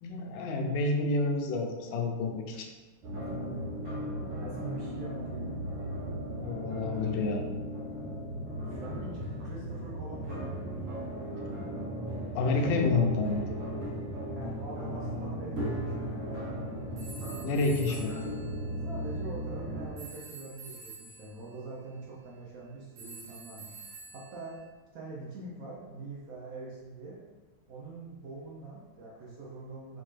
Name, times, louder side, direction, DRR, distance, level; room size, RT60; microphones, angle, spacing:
voice 1, 0.0-2.7 6.4-7.4 12.3-13.6 17.3-18.1, left 3 dB, 75° left, 2 dB, 1.2 m, -29 dB
sound 1, 3.0-19.9, equal, 50° right, 1.0 m, -36 dB
voice 2, 4.2-5.6 8.8-10.9 14.3-16.4 18.8-23.7 24.1-24.6 24.9-27.2 27.7-30.0, right 3 dB, 70° right, -5 dB, 0.8 m, -44 dB
sound 2, 17.0-19.2 20.0-21.4 23.0-24.7, right 3 dB, 90° right, 1.9 m, -48 dB
4.3 x 3.7 x 3.1 m, 1.3 s
omnidirectional pair, 2.4 m